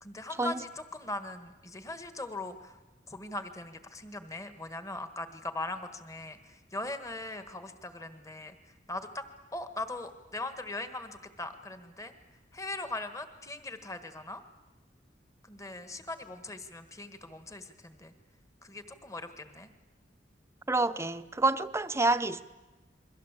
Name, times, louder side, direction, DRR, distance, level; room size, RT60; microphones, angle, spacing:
voice 1, 0.0-2.8 3.1-9.2 9.5-12.1 12.5-14.4 15.4-18.1 18.6-19.7, left 2 dB, 20° left, 1.6 m, -40 dB
voice 2, 20.7-22.4, right 2 dB, 15° right, 0.8 m, -28 dB
29.0 x 22.5 x 8.3 m
head